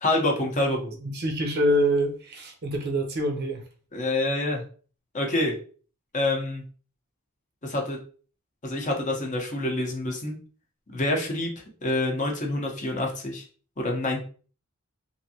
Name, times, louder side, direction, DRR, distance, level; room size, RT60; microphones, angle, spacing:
voice 1, 0.0-0.9 3.9-4.6 5.1-5.5 6.1-6.6 7.6-8.0 8.6-10.4 10.9-11.5 11.8-13.4 13.8-14.2, left 2 dB, 35° left, 1 dB, 0.7 m, -26 dB
voice 2, 1.0-3.6, equal, 45° right, 4 dB, 0.6 m, -25 dB
3.2 x 2.6 x 2.7 m, 0.40 s
head